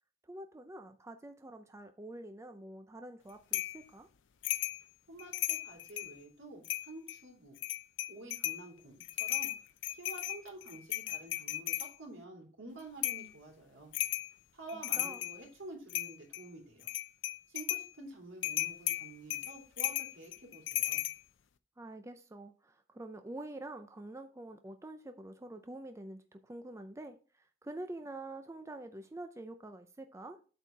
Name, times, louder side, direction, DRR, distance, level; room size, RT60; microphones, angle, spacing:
voice 1, 0.3-4.1 14.7-15.2 21.8-30.4, right 1 dB, 15° right, 0.5 m, -46 dB
sound 1, 3.5-3.8 4.4-4.8 5.2-6.1 6.6-7.2 7.6-8.6 9.0-11.9 13.0-13.3 13.9-14.3 14.7-15.4 15.9-16.4 16.8-17.9 18.4-21.2, left 14 dB, 70° left, 0.5 m, -35 dB
voice 2, 5.1-7.6 8.1-9.5 9.9-13.9 14.5-16.9 17.5-21.0, right 2 dB, 75° right, 3.2 m, -49 dB
8.2 x 4.3 x 5.0 m
head